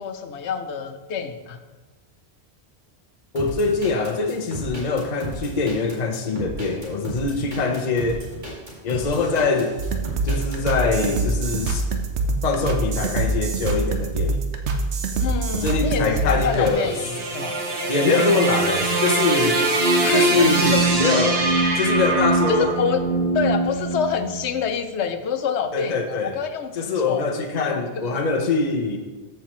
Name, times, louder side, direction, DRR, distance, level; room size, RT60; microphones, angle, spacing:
voice 1, 0.0-1.6 15.2-17.0 17.3-17.6 20.0-20.9 22.5-23.1 23.3-27.3 27.7-28.1, left 6 dB, 85° left, 8 dB, 1.0 m, -27 dB
voice 2, 3.3-8.3 8.8-9.8 10.2-11.9 12.4-14.4 15.5-17.0 17.9-19.6 20.1-21.5 21.8-22.8 25.7-26.4 26.7-29.0, left 4 dB, 45° left, 3 dB, 0.8 m, -23 dB
sound 1, 3.3-10.6, right 2 dB, 45° right, 2.5 m, -34 dB
sound 2, 9.8-16.7, right 3 dB, 80° right, 1.1 m, -25 dB
sound 3, 16.3-24.6, right 2 dB, 65° right, 1.3 m, -22 dB
13.5 x 5.7 x 3.0 m, 1.3 s
omnidirectional pair, 1.1 m